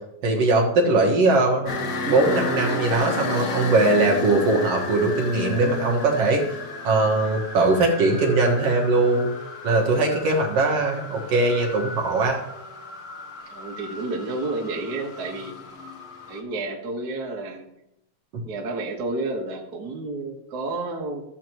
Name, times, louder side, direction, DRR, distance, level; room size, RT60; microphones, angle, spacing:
voice 1, 0.2-1.7 2.1-6.4 6.8-9.3 9.6-12.4, right 2 dB, 60° right, -1 dB, 2.3 m, -20 dB
sound 1, 1.7-16.4, left 3 dB, 80° left, 0.8 m, -33 dB
voice 2, 13.5-15.5 16.3-17.7 18.4-21.2, right 2 dB, 40° right, -1 dB, 1.6 m, -30 dB
14.0 x 7.6 x 3.0 m, 0.83 s
omnidirectional pair, 3.4 m